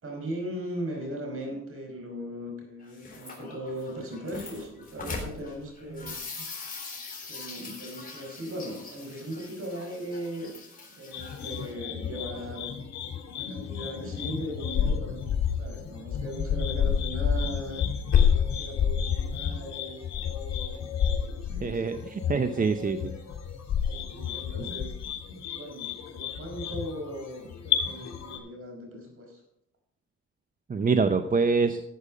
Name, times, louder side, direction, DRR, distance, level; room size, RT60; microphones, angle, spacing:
voice 1, 0.0-6.5 7.3-10.5 11.0-12.7 13.3-17.8 18.3-20.8 21.1-21.9 23.7-24.9 25.5-29.4, equal, 45° right, 3 dB, 4.9 m, -38 dB
sound 1, 2.8-11.7, left 3 dB, 30° left, 4.0 m, -42 dB
sound 2, 11.1-28.4, left 8 dB, 60° left, 3.1 m, -30 dB
voice 2, 21.6-23.1 24.6-24.7 30.7-31.8, right 4 dB, 30° right, 9 dB, 0.8 m, -25 dB
14.0 x 8.1 x 5.1 m, 0.78 s
cardioid pair, 90°, 30 cm